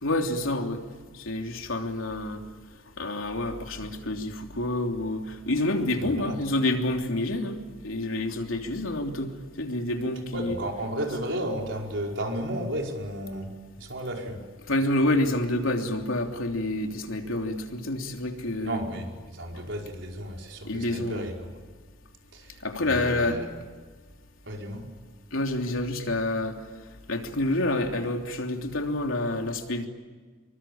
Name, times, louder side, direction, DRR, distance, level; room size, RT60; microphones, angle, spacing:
voice 1, 0.0-0.8 1.1-2.4 3.0-10.6 14.7-18.8 19.5-19.6 20.6-21.3 22.6-23.4 25.3-26.6 27.1-29.9, left 1 dB, 80° left, 3 dB, 3.2 m, -28 dB
voice 2, 6.0-6.4 10.3-13.5 13.8-14.4 18.6-21.5 22.3-23.5 24.4-24.8, equal, 60° right, 1 dB, 5.2 m, -33 dB
27.0 x 23.5 x 8.7 m, 1.5 s
head